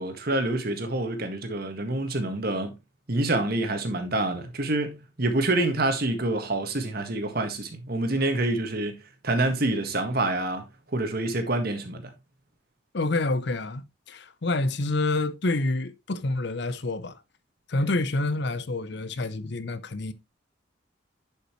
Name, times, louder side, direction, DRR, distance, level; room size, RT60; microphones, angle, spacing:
voice 1, 0.0-2.7 3.1-9.0 9.2-10.6 10.9-12.1, right 2 dB, 50° right, 1.7 m, -27 dB
voice 2, 12.9-17.2 17.7-20.1, left 2 dB, 60° left, 0.7 m, -28 dB
10.5 x 5.5 x 3.1 m
head